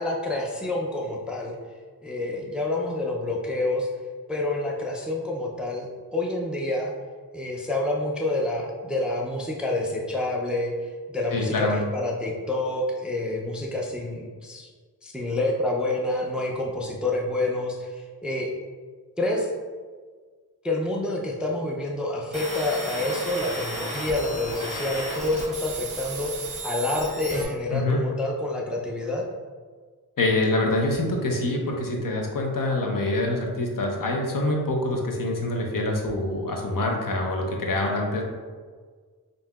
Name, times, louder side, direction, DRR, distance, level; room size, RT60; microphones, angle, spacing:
voice 1, 0.0-1.6 2.0-3.9 4.3-6.9 7.3-10.7 11.1-14.7 15.0-18.5 19.2-19.5 20.6-29.2, left 2 dB, 5° right, -1 dB, 0.4 m, -28 dB
voice 2, 11.3-11.9 27.7-28.1 30.2-38.2, left 2 dB, 60° left, 0 dB, 0.7 m, -25 dB
sound 1, 22.3-27.4, right 1 dB, 20° right, 1.2 m, -34 dB
5.4 x 2.7 x 2.3 m, 1.5 s
wide cardioid pair, 85°, 38 cm